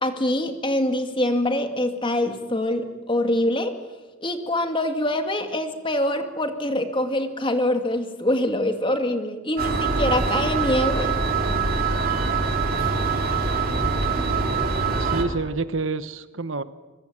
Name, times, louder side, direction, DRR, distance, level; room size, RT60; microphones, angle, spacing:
voice 1, 0.0-3.7 4.2-11.2, left 1 dB, 25° left, 7 dB, 2.2 m, -24 dB
sound 1, 9.6-15.2, right 4 dB, 45° right, 3.3 m, -23 dB
voice 2, 13.8-14.1 15.0-16.6, right 3 dB, 65° right, 13 dB, 1.1 m, -28 dB
24.5 x 23.0 x 9.0 m, 1.2 s
head